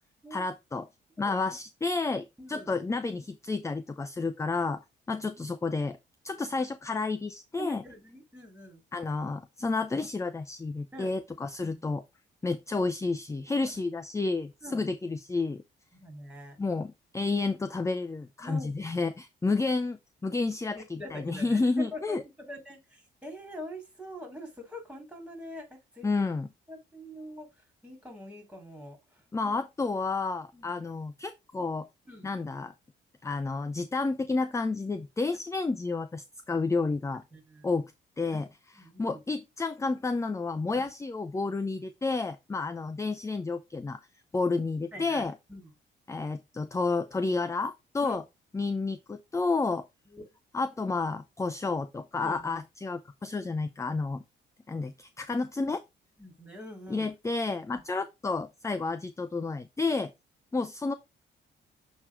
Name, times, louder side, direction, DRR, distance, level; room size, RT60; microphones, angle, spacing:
voice 1, 0.3-0.9 1.2-6.0 6.2-7.8 8.9-12.0 12.4-15.6 16.6-22.2 26.0-26.5 29.3-31.9 32.2-32.7 33.2-37.2 37.6-37.9 38.2-38.5 39.0-44.0 44.3-45.3 46.1-48.2 48.5-49.9 50.5-54.2 54.7-55.8 56.9-60.1 60.5-60.9, left 3 dB, 15° left, 0.5 m, -30 dB
voice 2, 2.4-2.7 7.6-8.8 10.9-11.1 11.4-11.8 13.5-13.7 14.6-14.8 15.9-16.6 18.4-18.8 20.7-22.2 22.5-26.1 26.7-27.5 27.8-29.5 30.5-30.8 32.1-32.3 37.3-37.7 38.3-38.5 38.8-39.2 40.7-40.9 44.9-45.2 45.5-45.7 48.0-48.2 50.1-50.2 52.2-52.5 56.2-57.1 57.7-57.8, equal, 5° right, 3.2 m, -44 dB
7.3 x 3.1 x 4.6 m
cardioid pair, 90°, 20 cm